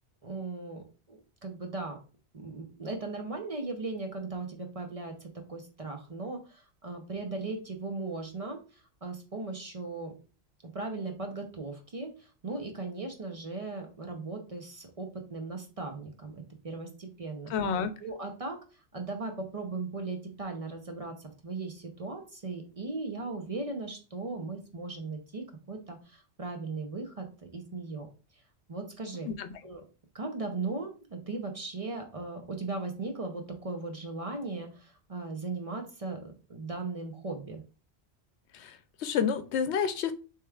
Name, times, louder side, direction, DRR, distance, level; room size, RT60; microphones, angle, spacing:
voice 1, 0.2-2.0 2.3-8.6 9.0-10.1 10.7-17.5 18.0-18.6 18.9-27.3 27.5-28.1 28.7-29.3 29.6-29.8 30.1-37.6, right 3 dB, 40° right, 3 dB, 0.7 m, -38 dB
voice 2, 17.5-17.9 29.4-29.5 38.5-40.1, left 7 dB, 80° left, 10 dB, 0.9 m, -29 dB
6.6 x 3.1 x 2.3 m, 0.35 s
omnidirectional pair, 1.1 m